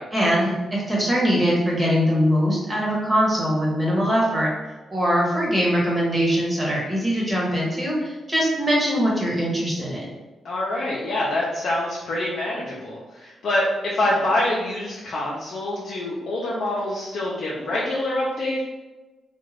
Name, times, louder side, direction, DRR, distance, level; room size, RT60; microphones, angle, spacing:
voice 1, 0.1-4.5 4.9-10.0, equal, 20° right, -5 dB, 1.2 m, -22 dB
voice 2, 10.4-18.6, left 1 dB, 65° left, -5 dB, 0.6 m, -25 dB
2.4 x 2.3 x 3.3 m, 1.1 s
cardioid pair, 65°, 0 cm